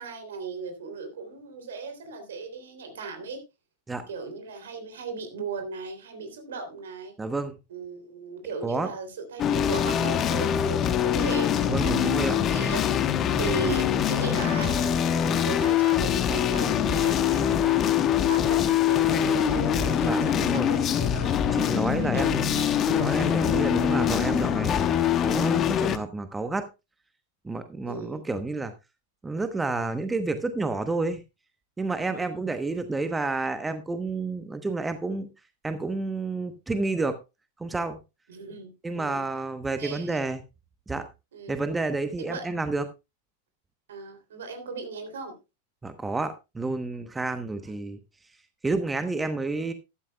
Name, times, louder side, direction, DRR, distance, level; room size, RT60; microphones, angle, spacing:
voice 1, 0.0-3.4 4.1-7.1 7.7-18.0 18.3-21.4 21.7-22.6 27.8-28.2 32.1-32.4 38.3-39.2 39.8-40.2 41.3-41.5 42.2-42.4 43.9-45.3, right 4 dB, 65° right, 3.3 m, -37 dB
voice 2, 7.2-7.6 8.6-8.9 11.7-12.4 20.0-20.7 21.5-26.7 27.4-28.7 29.2-31.2 31.8-35.3 35.6-37.2 37.6-38.0 38.8-40.4 40.9-41.0 41.5-42.9 45.8-48.0 48.6-49.7, right 3 dB, 10° right, 1.0 m, -30 dB
sound 1, 9.4-26.0, left 9 dB, 30° left, 1.1 m, -24 dB
13.0 x 12.5 x 2.3 m
figure-of-eight pair, 95°, 0 cm